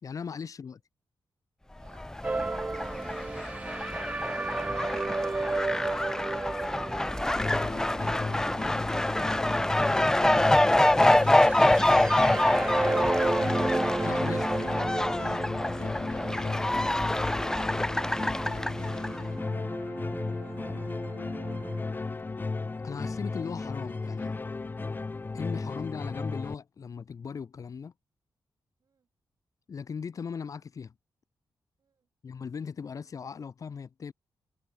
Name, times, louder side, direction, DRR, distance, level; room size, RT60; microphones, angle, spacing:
voice 1, 0.0-0.8 14.0-14.5 15.1-15.2 22.8-24.3 25.3-27.9 29.7-30.9 32.2-34.1, left 6 dB, 50° left, 2.5 m, -38 dB
voice 2, 1.8-4.7 20.1-21.7 28.8-29.1 31.8-32.1, right 6 dB, 50° right, 7.2 m, -62 dB
Fowl, 1.9-19.2, left 1 dB, 5° left, 0.4 m, -26 dB
sound 1, 2.2-21.8, right 3 dB, 20° right, 0.8 m, -34 dB
sound 2, 7.4-26.5, left 3 dB, 25° left, 1.7 m, -35 dB
wide cardioid pair, 130°, 8 cm